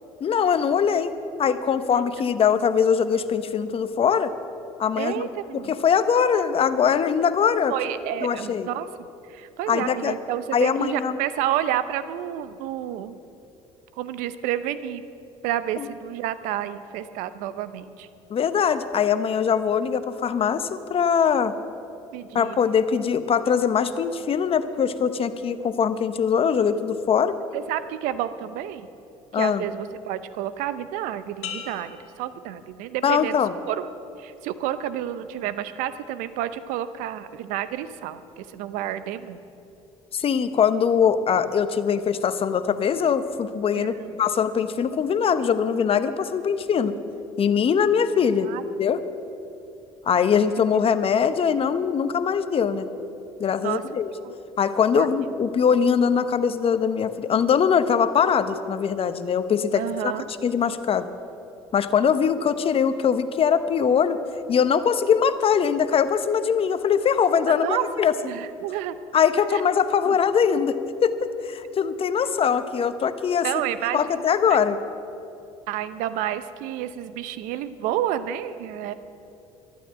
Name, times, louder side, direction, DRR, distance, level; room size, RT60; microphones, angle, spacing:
voice 1, 0.2-4.3 4.8-5.3 5.5-7.7 8.2-8.7 9.7-10.2 10.5-11.2 15.8-15.9 18.3-21.6 22.3-27.4 29.3-29.6 33.0-33.5 40.1-47.0 47.4-48.5 48.8-49.0 50.1-52.9 53.4-54.1 54.6-60.1 60.4-61.1 61.7-64.2 64.5-68.1 69.1-71.2 71.4-73.5 73.9-74.8, left 7 dB, 40° left, 12 dB, 0.9 m, -22 dB
voice 2, 5.0-5.7 7.7-8.9 9.3-13.1 14.0-15.0 15.4-18.1 22.1-22.6 27.5-28.9 29.3-33.4 33.7-33.9 34.2-39.4 43.7-44.1 48.4-48.6 53.6-53.8 54.2-54.3 55.0-55.1 59.7-60.2 67.6-67.8 68.2-69.0 69.5-69.6 70.1-70.2 73.4-74.2 74.5-74.6 75.7-78.9, right 11 dB, 70° right, 13 dB, 0.7 m, -30 dB
sound 1, 31.4-33.2 33.7-34.2, left 8 dB, 80° left, 1.2 m, -40 dB
13.0 x 11.5 x 7.4 m, 2.8 s
hypercardioid pair, 65°, 14 cm